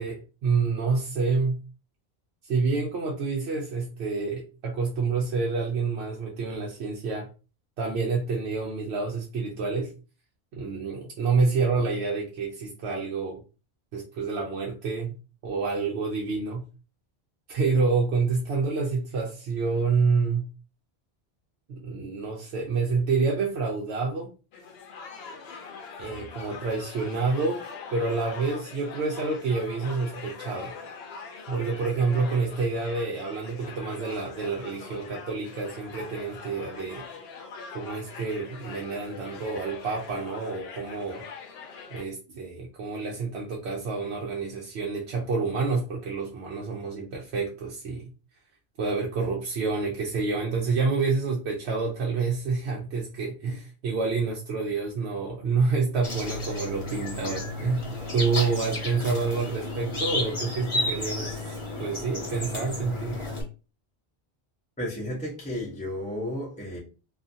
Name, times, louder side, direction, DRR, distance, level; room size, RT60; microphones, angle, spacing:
voice 1, 0.0-1.6 2.4-7.3 7.8-9.9 10.5-13.4 13.9-15.2 15.4-16.7 17.5-20.5 21.7-24.3 26.0-27.6 27.9-30.7 31.5-37.1 37.7-41.2 41.9-48.0 48.8-57.9 58.1-63.2, right 4 dB, 80° right, 0.9 m, -28 dB
sound 1, 24.5-42.0, left 5 dB, 75° left, 0.8 m, -42 dB
sound 2, 56.0-63.4, left 2 dB, 30° left, 0.9 m, -32 dB
voice 2, 64.8-66.8, left 1 dB, 10° left, 0.5 m, -33 dB
2.4 x 2.4 x 2.6 m
omnidirectional pair, 1.1 m